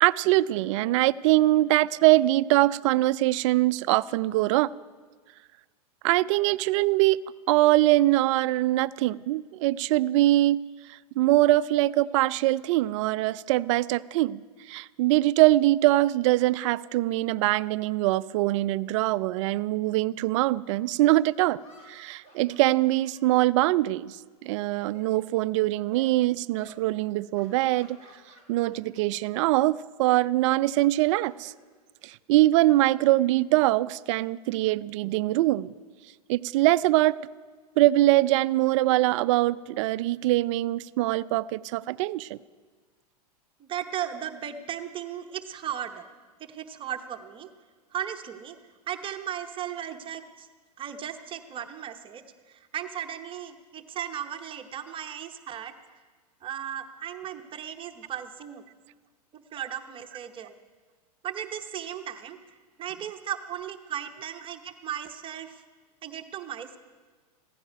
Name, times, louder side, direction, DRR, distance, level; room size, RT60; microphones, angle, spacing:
voice 1, 0.0-4.7 6.0-7.2 7.5-10.6 10.9-21.6 21.9-24.2 24.4-28.0 28.5-31.5 32.0-35.7 36.3-37.2 37.8-42.4, right 17 dB, 50° right, 18 dB, 0.4 m, -23 dB
sound 1, 20.7-20.8 21.5-24.2 24.5-25.5 25.9-26.1 26.6-26.8 27.3-29.0 29.3-29.6 30.8-32.3, equal, 35° left, 3.3 m, -56 dB
voice 2, 43.6-46.0 46.4-47.5 47.9-48.5 48.9-50.5 50.8-55.7 56.4-58.6 59.3-60.5 61.2-62.4 62.8-65.6 66.0-66.8, right 10 dB, 25° right, 6 dB, 0.9 m, -36 dB
15.5 x 14.5 x 5.2 m, 1.4 s
hypercardioid pair, 110°, 20 cm